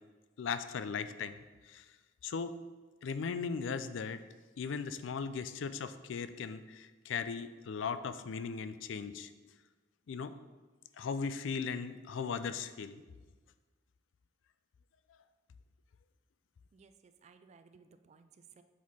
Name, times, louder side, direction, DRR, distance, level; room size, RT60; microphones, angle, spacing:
voice 1, 0.4-1.4 1.6-1.8 2.2-2.6 3.0-4.2 4.6-9.3 10.1-10.3 11.0-13.0, left 5 dB, 75° left, 12 dB, 0.4 m, -38 dB
voice 2, 16.7-18.6, right 5 dB, 35° right, 10 dB, 0.3 m, -60 dB
7.4 x 4.2 x 4.1 m, 1.3 s
head